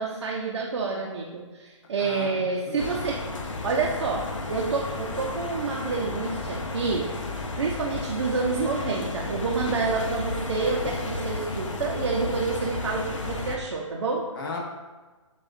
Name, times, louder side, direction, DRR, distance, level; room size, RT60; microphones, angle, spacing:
voice 1, 0.0-3.2 3.6-7.1 7.6-14.2, right 4 dB, 60° right, -3 dB, 0.6 m, -28 dB
voice 2, 2.0-2.9 14.3-14.6, left 3 dB, 45° left, 0 dB, 0.9 m, -36 dB
sound 1, 2.8-13.6, left 2 dB, 75° left, 0.6 m, -33 dB
7.0 x 2.4 x 2.5 m, 1.3 s
figure-of-eight pair, 145°, 17 cm